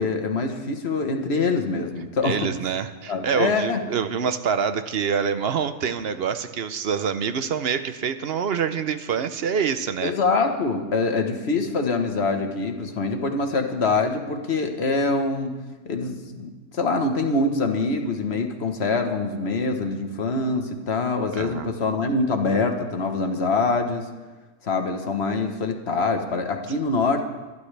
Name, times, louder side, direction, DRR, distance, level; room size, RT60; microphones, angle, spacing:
voice 1, 0.0-2.5 3.1-3.8 10.0-15.6 15.8-24.0 24.6-27.2, left 3 dB, 55° left, 5 dB, 1.4 m, -24 dB
voice 2, 2.2-10.1 21.3-21.7, right 7 dB, 55° right, 11 dB, 0.9 m, -26 dB
24.5 x 11.5 x 3.4 m, 1.2 s
omnidirectional pair, 1.4 m